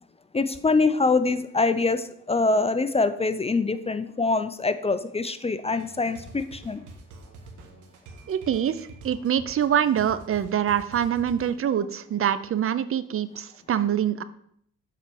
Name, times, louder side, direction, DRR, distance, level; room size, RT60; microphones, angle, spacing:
voice 1, 0.3-6.8, left 3 dB, 20° left, 12 dB, 0.5 m, -24 dB
sound 1, 5.7-11.5, right 3 dB, 85° right, 1.6 m, -46 dB
voice 2, 8.3-14.2, right 9 dB, 45° right, 14 dB, 0.6 m, -25 dB
7.4 x 4.3 x 7.0 m, 0.67 s
cardioid pair, 90°, 30 cm